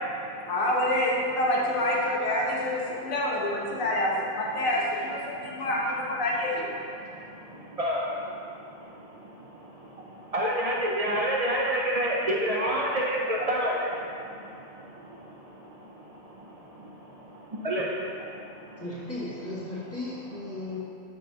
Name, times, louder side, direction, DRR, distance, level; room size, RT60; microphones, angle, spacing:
voice 1, 0.5-6.7, left 1 dB, 90° left, -3 dB, 1.4 m, -27 dB
voice 2, 10.3-14.0 17.6-17.9, equal, 65° right, -3 dB, 0.3 m, -26 dB
voice 3, 18.8-20.8, left 2 dB, 10° left, -10 dB, 1.4 m, -36 dB
7.1 x 5.4 x 2.8 m, 2.5 s
omnidirectional pair, 1.4 m